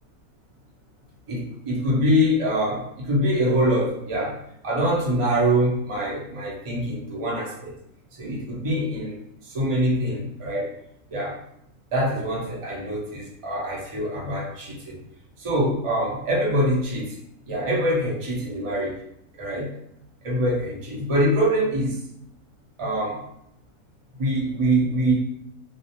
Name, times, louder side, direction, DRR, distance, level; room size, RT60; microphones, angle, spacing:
voice 1, 1.3-4.4 4.6-7.7 8.2-10.7 11.1-11.4 11.9-15.0 15.4-17.1 17.5-19.0 19.4-19.7 20.2-22.0 22.8-23.2 24.2-25.1, equal, 45° right, -5 dB, 0.4 m, -24 dB
2.4 x 2.1 x 2.8 m, 0.76 s
omnidirectional pair, 1.5 m